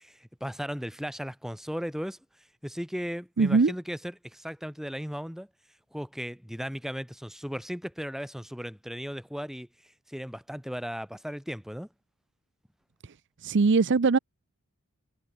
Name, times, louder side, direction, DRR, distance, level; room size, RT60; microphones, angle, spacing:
voice 1, 0.0-2.2 2.6-5.5 5.9-9.7 10.1-11.9, equal, ahead, 3.1 m, -36 dB
voice 2, 3.4-3.7 13.4-14.2, right 4 dB, 55° right, 0.6 m, -21 dB
head